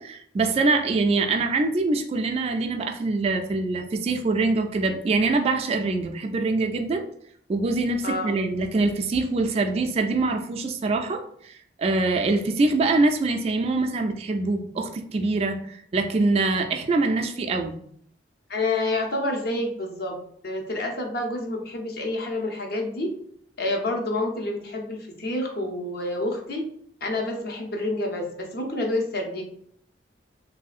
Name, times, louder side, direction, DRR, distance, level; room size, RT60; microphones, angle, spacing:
voice 1, 0.0-7.1 7.5-17.8, right 3 dB, 35° right, 4 dB, 0.3 m, -24 dB
voice 2, 8.0-8.3 18.5-20.1 20.4-23.1 23.6-26.6 27.0-29.4, left 2 dB, 60° left, 2 dB, 0.7 m, -28 dB
3.0 x 2.7 x 2.4 m, 0.64 s
head